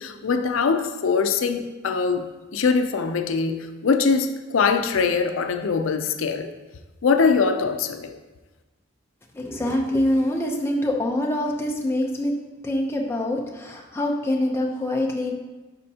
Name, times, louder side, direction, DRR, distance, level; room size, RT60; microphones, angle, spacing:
voice 1, 0.0-2.3 2.5-6.5 7.0-8.1, left 5 dB, 85° left, 7 dB, 0.5 m, -22 dB
voice 2, 9.3-12.3 12.6-15.3, left 1 dB, 10° left, 0 dB, 0.6 m, -25 dB
10.5 x 4.2 x 2.8 m, 1.2 s
head